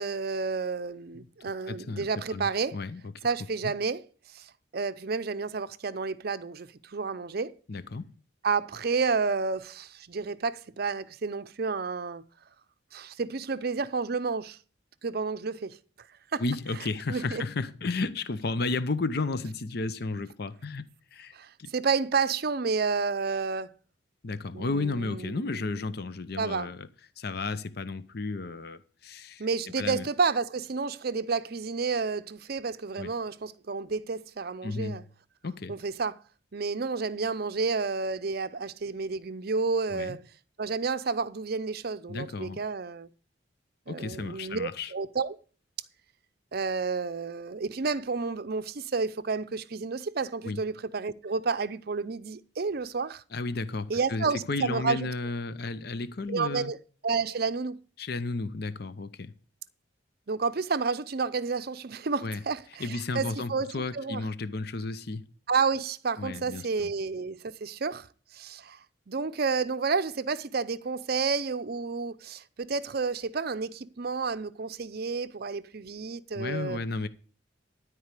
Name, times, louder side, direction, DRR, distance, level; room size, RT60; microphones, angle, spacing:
voice 1, 0.0-2.8 3.2-4.0 4.3-7.5 8.4-12.2 12.9-14.6 15.0-15.8 16.3-16.4 17.1-17.4 21.3-23.7 24.5-25.6 26.4-26.7 29.4-35.0 35.7-36.2 36.5-40.2 40.6-43.1 43.9-45.4 46.5-53.2 53.9-55.1 56.3-56.8 57.0-57.8 60.3-64.2 65.5-68.1 68.3-68.8 69.1-76.8, right 4 dB, 55° right, 0.6 m, -30 dB
voice 2, 1.7-3.1 7.7-8.1 16.4-20.8 21.1-21.7 24.2-26.9 27.2-29.5 29.8-30.1 33.0-33.1 34.6-35.0 35.4-35.7 39.9-40.2 42.1-42.6 43.9-44.9 50.4-50.6 53.3-56.7 58.0-59.3 62.2-62.4 62.8-65.3 66.2-66.9 76.3-77.1, left 3 dB, 55° left, 0.7 m, -33 dB
12.5 x 4.7 x 8.2 m
head